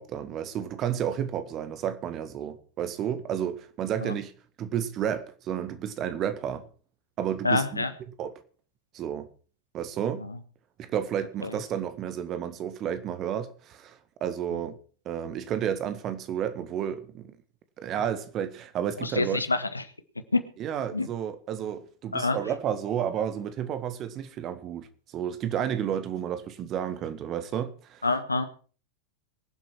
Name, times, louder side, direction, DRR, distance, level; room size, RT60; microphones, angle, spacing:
voice 1, 0.0-4.3 4.6-6.7 7.2-7.8 8.2-8.3 8.9-9.3 9.7-10.2 10.8-14.8 15.1-17.4 17.8-19.4 20.6-24.9 25.1-28.0, right 9 dB, 35° right, 1.7 m, -31 dB
voice 2, 7.4-7.9 10.2-10.4 11.4-11.6 19.0-19.8 20.3-20.4 20.9-21.1 22.1-22.4 28.0-28.4, left 3 dB, 80° left, 1.4 m, -26 dB
23.0 x 7.8 x 4.6 m
figure-of-eight pair, 90°, 0 cm